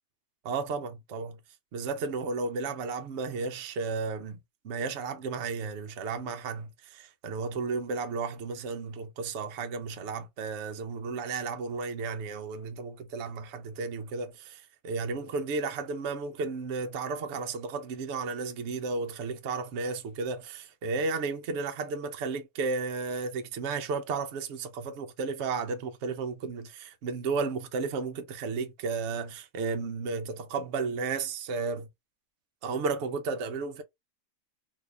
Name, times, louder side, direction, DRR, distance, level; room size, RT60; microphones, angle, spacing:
voice 1, 0.4-1.4 1.7-4.4 4.6-31.9 32.6-33.8, right 4 dB, 65° right, 0.9 m, -33 dB
2.7 x 2.7 x 3.4 m
omnidirectional pair, 1.5 m